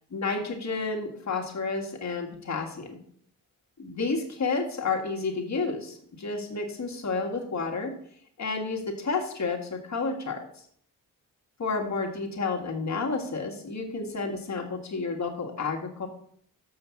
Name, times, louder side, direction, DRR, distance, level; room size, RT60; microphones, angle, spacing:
voice 1, 0.1-3.0 3.8-7.9 8.4-10.4 11.6-16.1, left 4 dB, 55° left, 1 dB, 1.9 m, -30 dB
7.1 x 5.6 x 7.1 m, 0.65 s
cardioid pair, 75°, 33 cm